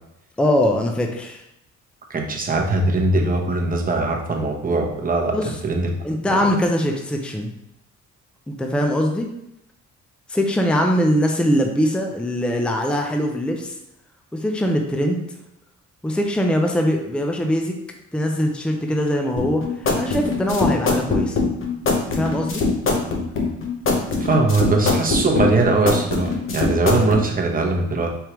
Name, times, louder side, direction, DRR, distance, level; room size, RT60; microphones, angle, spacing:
voice 1, 0.4-1.4 5.3-5.5 6.0-7.5 8.5-9.3 10.3-13.7 14.3-15.2 16.0-17.8 18.1-21.4 22.1-22.6, equal, 5° left, 2 dB, 0.6 m, -22 dB
voice 2, 2.1-5.4 5.6-5.9 6.3-6.4 24.2-28.1, right 3 dB, 30° right, 1 dB, 1.0 m, -21 dB
sound 1, 19.4-27.2, left 3 dB, 45° left, 1.0 m, -22 dB
4.6 x 3.5 x 3.0 m, 0.81 s
cardioid pair, 90°, 30 cm